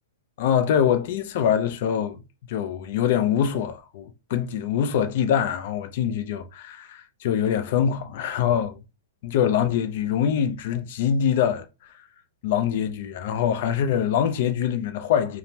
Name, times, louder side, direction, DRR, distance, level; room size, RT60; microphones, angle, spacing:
voice 1, 0.4-2.2 2.5-8.8 9.2-11.6 12.4-15.4, left 8 dB, 40° left, 0.4 m, -24 dB
2.7 x 2.0 x 3.2 m
hypercardioid pair, 170°, 0 cm